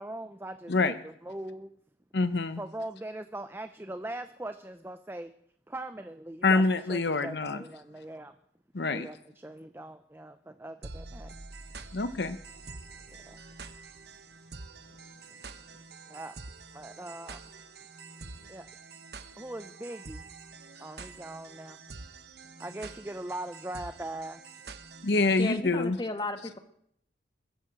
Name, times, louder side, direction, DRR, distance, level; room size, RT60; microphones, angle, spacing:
voice 1, 0.0-1.7 2.6-5.3 5.7-8.3 8.9-11.3 13.1-13.4 16.1-16.3 16.7-17.4 18.5-18.7 19.4-20.2 20.8-21.8 22.6-24.4, right 1 dB, 10° right, 9 dB, 0.6 m, -41 dB
voice 2, 2.1-2.6 6.4-7.6 8.7-9.1 11.9-12.4 25.0-26.0, left 3 dB, 60° left, 12 dB, 0.8 m, -26 dB
sound 1, 10.8-25.6, right 3 dB, 55° right, 1.2 m, -47 dB
voice 3, 25.4-26.6, left 2 dB, 25° left, 8 dB, 1.3 m, -34 dB
21.5 x 8.5 x 7.8 m, 0.70 s
head